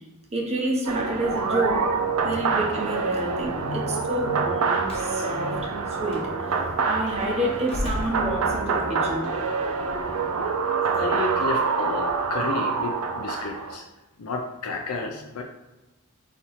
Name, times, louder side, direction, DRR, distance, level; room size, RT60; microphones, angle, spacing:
voice 1, 0.3-1.9 2.2-6.6 6.9-9.3, right 1 dB, 30° right, 0 dB, 0.7 m, -29 dB
sound 1, 0.9-13.8, right 5 dB, 85° right, 0.5 m, -26 dB
voice 2, 2.2-2.5 3.6-4.4 5.3-5.6 6.6-6.8 11.0-13.9 14.2-15.4, left 3 dB, 90° left, 2 dB, 0.5 m, -32 dB
Slam, 4.8-5.1 6.1-6.3 7.6-8.9, left 1 dB, 25° left, 0.8 m, -33 dB
4.1 x 2.9 x 4.0 m, 1.0 s
head